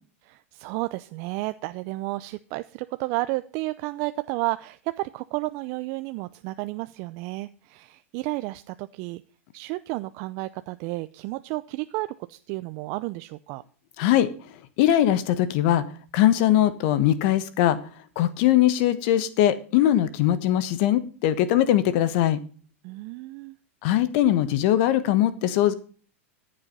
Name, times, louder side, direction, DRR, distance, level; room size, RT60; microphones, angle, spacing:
voice 1, 0.2-9.2 9.5-13.6 22.8-23.6, right 21 dB, 50° right, 12 dB, 0.6 m, -32 dB
voice 2, 14.0-14.3 14.8-15.8 16.1-17.9 18.1-22.4 23.8-25.7, left 12 dB, 55° left, 14 dB, 1.3 m, -21 dB
14.5 x 7.6 x 5.4 m, 0.41 s
hypercardioid pair, 110°, 7 cm